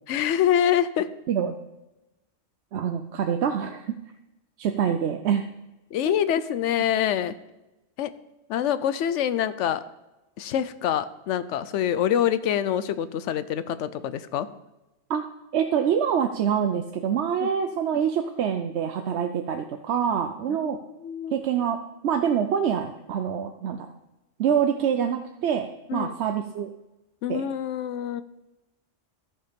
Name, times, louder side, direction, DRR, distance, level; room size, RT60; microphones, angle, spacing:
voice 1, 0.1-1.1 5.9-7.3 8.0-8.1 8.5-9.8 10.4-14.5 17.4-17.5 20.6-21.4 25.9-26.1 27.2-28.2, left 10 dB, 85° left, 14 dB, 0.9 m, -25 dB
voice 2, 2.7-3.9 4.6-5.4 6.0-6.2 15.1-15.2 15.5-20.8 21.3-21.8 22.0-23.9 24.4-26.7 27.3-27.5, right 8 dB, 70° right, 6 dB, 0.9 m, -25 dB
13.0 x 5.6 x 5.2 m, 0.99 s
omnidirectional pair, 1.2 m